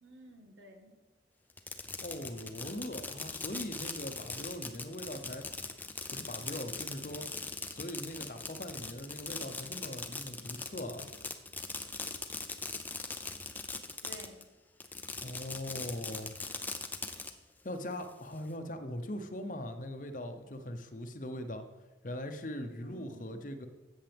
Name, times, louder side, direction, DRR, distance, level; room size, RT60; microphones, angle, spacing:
voice 1, 0.0-1.0 14.0-14.5 22.8-23.4, equal, 80° right, 4 dB, 1.6 m, -52 dB
Fireworks, 1.5-14.4 14.8-17.3, left 3 dB, 10° left, 0.5 m, -40 dB
voice 2, 2.0-5.4 6.1-7.3 7.7-11.1 15.2-16.4 17.6-21.6 22.0-23.7, left 1 dB, 45° left, 7 dB, 0.8 m, -41 dB
13.5 x 8.2 x 3.5 m, 1.1 s
head